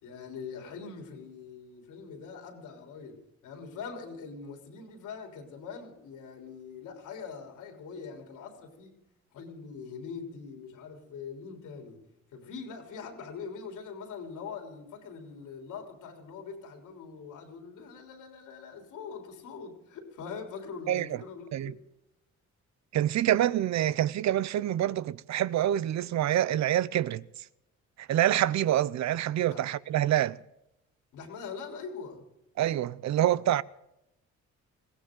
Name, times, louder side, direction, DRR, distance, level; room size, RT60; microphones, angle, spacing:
voice 1, 0.0-9.0 9.3-12.0 12.3-21.8 29.5-29.6 31.1-32.2, left 5 dB, 85° left, 3.7 m, -43 dB
voice 2, 20.9-21.2 21.5-21.7 22.9-27.2 28.0-30.4 32.6-33.6, right 12 dB, 65° right, 0.6 m, -26 dB
22.0 x 17.0 x 3.9 m
cardioid pair, 90°, 30 cm